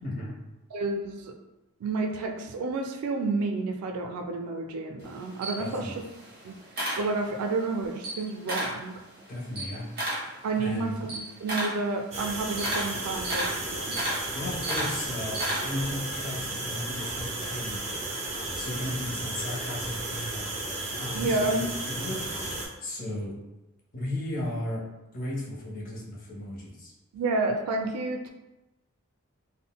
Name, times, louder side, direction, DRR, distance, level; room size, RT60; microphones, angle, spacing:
voice 1, 0.0-0.4 5.6-5.9 9.3-9.9 10.5-10.9 14.3-20.5 21.0-22.5 22.8-23.4 23.9-24.8 25.1-26.9, left 1 dB, 40° left, -4 dB, 0.6 m, -35 dB
voice 2, 0.7-1.3 1.8-5.9 6.4-6.6 7.0-9.0 10.4-14.0 21.1-21.7 27.1-28.3, right 3 dB, 90° right, 4 dB, 0.3 m, -30 dB
Camera, 5.0-7.6 7.9-8.8 9.2-15.9, right 1 dB, 45° right, 0.9 m, -33 dB
sound 1, 12.1-22.7, right 2 dB, 30° right, 0.5 m, -34 dB
3.7 x 2.0 x 2.2 m, 0.97 s
head